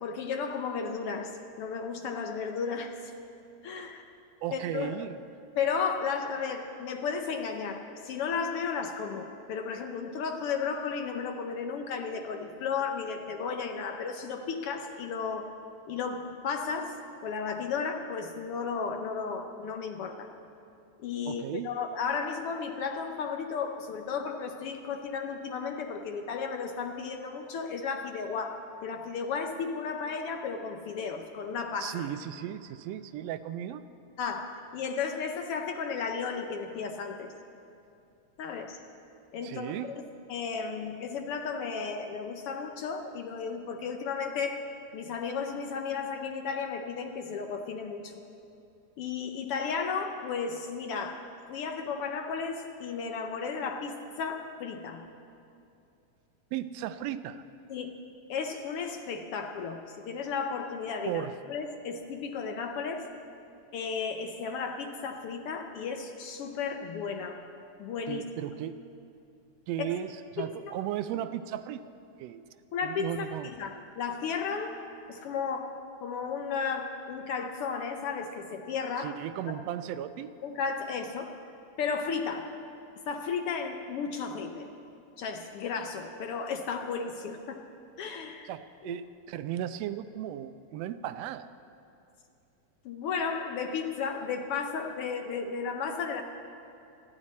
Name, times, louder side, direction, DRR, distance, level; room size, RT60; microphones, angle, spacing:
voice 1, 0.0-3.1 3.6-4.0 4.5-5.0 5.6-15.5 15.9-20.3 21.0-32.1 34.2-37.3 38.4-38.8 39.3-40.0 40.3-44.6 44.9-48.2 49.0-55.1 57.7-57.9 58.3-63.1 63.7-67.4 67.8-68.2 69.8-70.0 70.4-70.7 72.7-74.8 75.1-79.1 80.4-81.3 81.8-82.5 83.1-84.7 85.2-87.6 88.0-88.5 88.8-89.0 92.8-96.2, left 5 dB, 75° left, 5 dB, 1.3 m, -34 dB
voice 2, 4.4-5.2 21.3-21.7 31.8-33.8 39.4-40.0 56.5-57.4 61.1-61.3 68.1-68.8 69.7-71.8 72.2-72.4 72.8-73.5 79.0-80.3 88.5-91.5, right 11 dB, 80° right, 11 dB, 1.5 m, -36 dB
20.0 x 14.0 x 4.2 m, 2.6 s
omnidirectional pair, 3.3 m